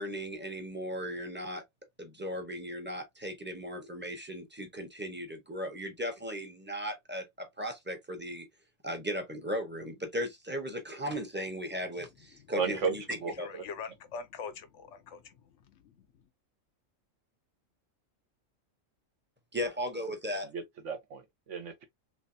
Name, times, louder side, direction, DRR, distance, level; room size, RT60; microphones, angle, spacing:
voice 1, 0.0-1.6 2.0-8.5 8.8-13.5 19.5-20.5, equal, 10° right, 0.8 m, -37 dB
voice 2, 12.6-12.9 13.2-13.6 20.5-21.8, right 5 dB, 70° right, 1.2 m, -34 dB
voice 3, 13.4-16.1, left 6 dB, 70° left, 0.9 m, -44 dB
3.3 x 3.2 x 2.6 m
omnidirectional pair, 1.3 m